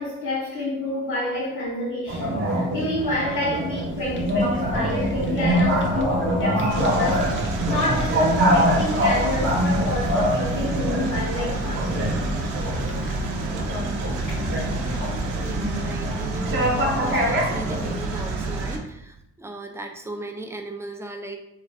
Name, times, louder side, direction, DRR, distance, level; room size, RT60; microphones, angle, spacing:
voice 1, 0.0-7.3 7.7-12.1 14.3-14.4, left 1 dB, 70° left, -6 dB, 0.9 m, -28 dB
sound 1, 2.1-17.9, equal, 40° right, 0.8 m, -25 dB
Fire, 3.6-17.0, left 1 dB, 40° left, 0.5 m, -35 dB
sound 2, 6.7-18.8, right 3 dB, 85° right, 0.5 m, -30 dB
voice 2, 15.4-21.4, right 2 dB, 10° right, 4 dB, 0.3 m, -36 dB
2.5 x 2.4 x 3.2 m, 0.79 s
cardioid pair, 90°, 30 cm